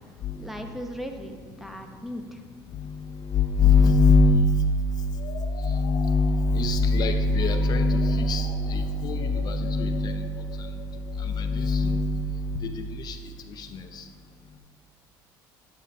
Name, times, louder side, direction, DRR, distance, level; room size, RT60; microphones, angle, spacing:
voice 1, 0.4-2.4, equal, 5° right, 4 dB, 0.7 m, -37 dB
voice 2, 2.7-4.6 5.6-10.3 10.6-10.7 11.2-13.2 13.6-14.0, left 3 dB, 50° left, 7 dB, 0.5 m, -23 dB
sound 1, 5.1-11.8, left 5 dB, 80° left, 1.0 m, -45 dB
11.0 x 5.3 x 4.2 m, 2.2 s
cardioid pair, 115°, 9 cm